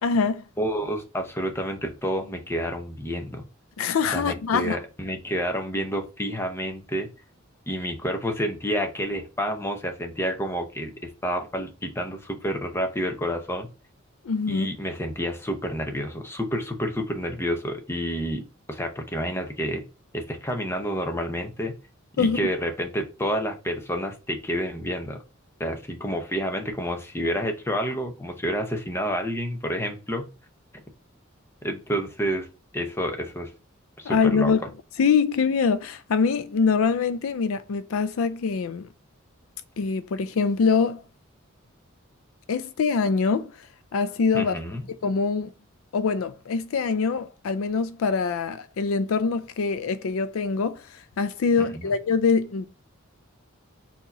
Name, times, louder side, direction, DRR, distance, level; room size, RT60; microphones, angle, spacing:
voice 1, 0.0-0.4 3.8-4.8 14.2-14.7 22.2-22.4 34.0-34.6 35.0-38.9 39.8-41.0 42.5-43.7 43.9-44.5 45.0-45.5 45.9-52.7, left 5 dB, 80° left, 0.4 m, -24 dB
voice 2, 0.6-3.4 4.1-7.1 7.7-13.7 14.5-18.4 18.7-19.8 20.1-21.7 22.2-25.2 25.6-30.3 31.6-32.5 32.7-33.5 34.0-34.7 44.3-44.8 51.7-51.9, equal, 10° left, 0.8 m, -29 dB
4.5 x 2.9 x 4.1 m
head